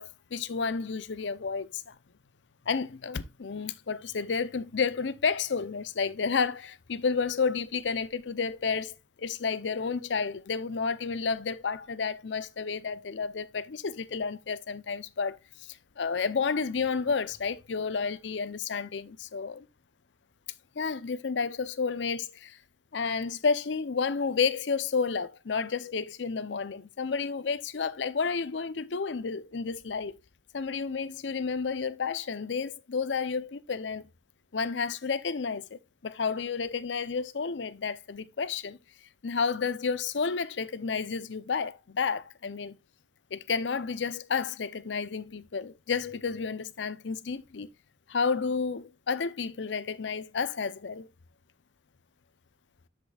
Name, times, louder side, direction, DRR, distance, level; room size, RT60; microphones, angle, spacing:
voice 1, 0.0-1.9 2.7-19.7 20.8-22.6 22.9-30.2 30.5-34.0 34.5-38.8 39.2-42.8 43.3-47.7 48.1-51.1, left 5 dB, 85° left, 0.6 m, -31 dB
12.5 x 5.2 x 2.3 m
head